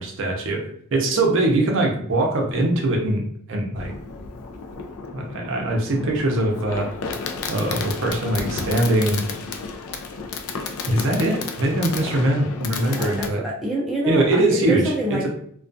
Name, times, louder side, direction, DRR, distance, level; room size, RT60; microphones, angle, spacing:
voice 1, 0.0-3.2 3.5-3.9 5.1-6.9 7.5-9.2 10.9-13.4 14.1-14.8 15.1-15.3, right 1 dB, 60° right, 1 dB, 0.5 m, -22 dB
Fireworks, 3.8-13.3, left 4 dB, 70° left, 0.3 m, -32 dB
voice 2, 12.8-15.3, right 1 dB, ahead, -6 dB, 0.4 m, -27 dB
2.3 x 2.2 x 2.5 m, 0.64 s
head